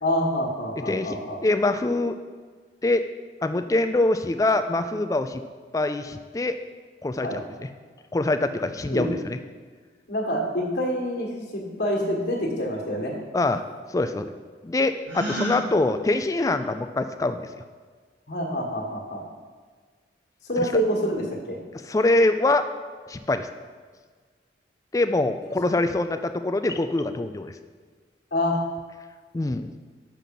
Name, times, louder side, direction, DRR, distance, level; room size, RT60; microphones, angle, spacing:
voice 1, 0.0-1.4 7.2-7.4 8.9-9.1 10.1-13.1 18.3-19.2 20.5-21.6 28.3-28.6, equal, 65° left, -2 dB, 1.5 m, -26 dB
voice 2, 0.9-2.2 2.8-3.0 3.4-5.4 5.7-6.6 7.0-7.7 8.1-9.4 13.3-13.6 13.9-14.3 14.6-17.5 20.6-20.7 21.8-22.7 23.1-23.5 24.9-27.5 29.3-29.7, left 2 dB, 20° left, 9 dB, 0.3 m, -24 dB
Gasp, 15.1-15.6, equal, 90° right, 2.3 m, -29 dB
6.2 x 5.8 x 5.3 m, 1.5 s
head